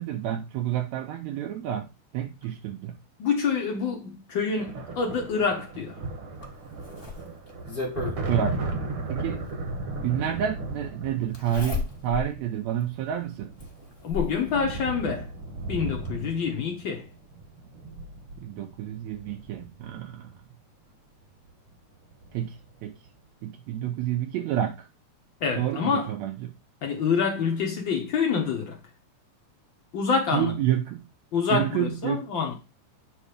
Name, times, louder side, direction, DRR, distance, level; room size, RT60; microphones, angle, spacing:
voice 1, 0.0-3.0 8.3-8.7 9.1-9.4 10.0-13.6 18.4-20.3 22.3-22.9 23.4-24.9 25.6-26.5 30.3-31.1 31.5-32.3, right 10 dB, 80° right, 1.8 m, -29 dB
voice 2, 3.2-6.0 14.0-15.3 15.7-17.1 25.4-26.1 26.8-28.8 29.9-30.5 31.3-32.6, left 5 dB, 70° left, 1.1 m, -27 dB
sound 1, 4.6-20.3 21.5-21.7 22.0-22.7, right 2 dB, 60° right, 1.7 m, -36 dB
Zipper (clothing), 6.4-8.2 9.6-9.7 11.3-12.3 12.8-12.9 13.6-14.4 15.6-15.7 16.0-16.1, left 4 dB, 35° left, 0.8 m, -33 dB
8.3 x 3.1 x 5.0 m
omnidirectional pair, 3.4 m